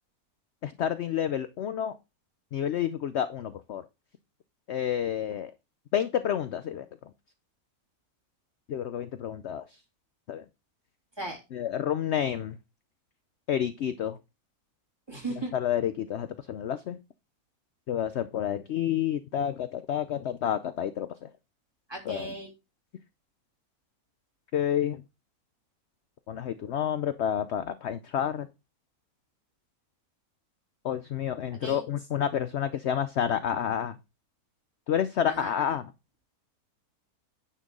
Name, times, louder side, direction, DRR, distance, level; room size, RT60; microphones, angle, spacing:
voice 1, 0.6-1.9 2.5-3.8 4.7-5.5 5.9-6.9 8.7-9.6 10.3-10.4 11.5-12.6 13.5-14.2 15.5-17.0 17.9-21.3 22.1-22.3 24.5-25.0 26.3-28.5 30.8-34.0 34.9-35.8, left 9 dB, 60° left, 0.8 m, -29 dB
voice 2, 15.1-15.5 21.9-22.5 31.6-31.8 35.3-35.7, right 2 dB, 15° right, 3.2 m, -36 dB
10.0 x 4.5 x 6.1 m
omnidirectional pair, 1.6 m